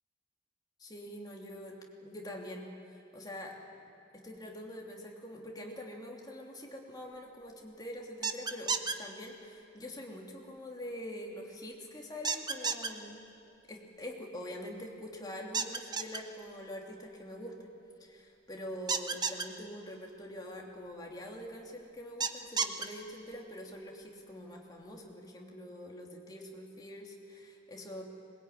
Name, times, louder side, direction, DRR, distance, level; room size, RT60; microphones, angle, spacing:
voice 1, 0.8-2.7 3.1-3.6 4.1-8.7 9.0-13.3 13.7-17.7 18.0-28.0, equal, 25° left, -1 dB, 2.9 m, -45 dB
sound 1, 8.2-8.9 12.2-12.9 15.5-16.2 18.9-19.4 22.2-22.8, right 5 dB, 25° right, 0.9 m, -31 dB
21.5 x 21.0 x 9.1 m, 2.6 s
head